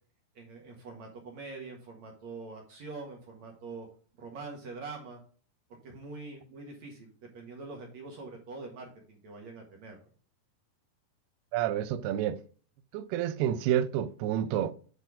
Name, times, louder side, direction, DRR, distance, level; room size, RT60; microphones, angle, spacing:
voice 1, 0.4-3.9 4.2-5.2 5.8-10.0, right 3 dB, 55° right, 2.3 m, -44 dB
voice 2, 11.5-12.4 12.9-14.7, right 11 dB, 85° right, 2.6 m, -29 dB
8.2 x 4.4 x 4.7 m
omnidirectional pair, 4.5 m